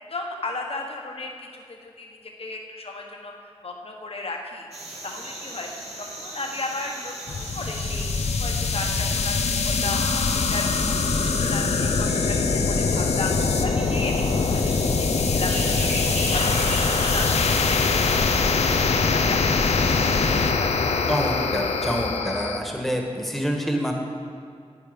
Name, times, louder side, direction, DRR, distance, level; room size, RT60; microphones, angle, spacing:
voice 1, 0.1-2.1 2.4-4.7 5.0-5.7 6.0-8.1 8.4-10.8 11.1-14.1 14.5-15.9 16.1-17.8 18.1-21.0, left 2 dB, 60° left, 1 dB, 1.4 m, -35 dB
sound 1, 4.7-20.3, right 1 dB, 75° right, 2.3 m, -36 dB
sound 2, 7.3-22.6, left 4 dB, 80° left, 0.7 m, -23 dB
voice 2, 21.1-23.9, equal, ahead, 1 dB, 1.7 m, -27 dB
10.5 x 9.4 x 5.2 m, 2.3 s
wide cardioid pair, 65°, 11 cm